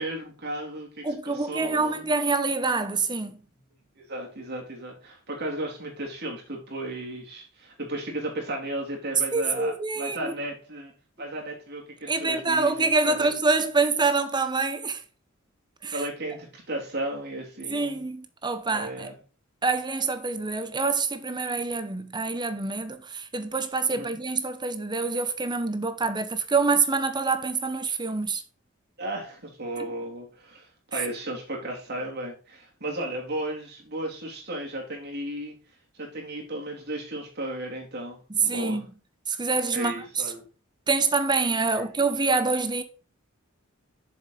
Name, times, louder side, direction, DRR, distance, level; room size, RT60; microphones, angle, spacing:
voice 1, 0.0-2.1 3.9-10.9 11.2-13.3 15.9-18.0 18.7-19.2 23.9-24.2 29.0-35.5 35.9-38.8 39.7-40.5 41.7-42.0, right 1 dB, 50° right, 3.1 m, -35 dB
voice 2, 1.0-3.4 9.3-10.3 12.1-15.0 15.8-16.0 17.7-19.1 19.6-28.4 29.8-29.9 30.9-31.0 38.3-38.8 39.3-40.0 40.9-42.8, right 4 dB, 20° right, 0.9 m, -26 dB
7.7 x 6.7 x 4.0 m
head